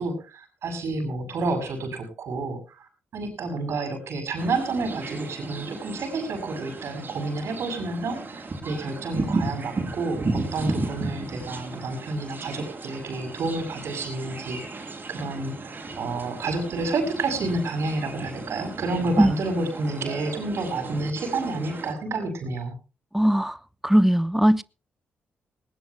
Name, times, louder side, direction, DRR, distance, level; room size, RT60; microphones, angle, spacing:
voice 1, 0.0-22.7, right 3 dB, 70° right, 6.9 m, -30 dB
sound 1, 4.4-21.9, right 3 dB, 45° right, 6.2 m, -34 dB
voice 2, 23.1-23.6 23.8-24.6, equal, 5° right, 0.9 m, -19 dB
20.0 x 19.0 x 2.3 m
supercardioid pair, 45°, 5 cm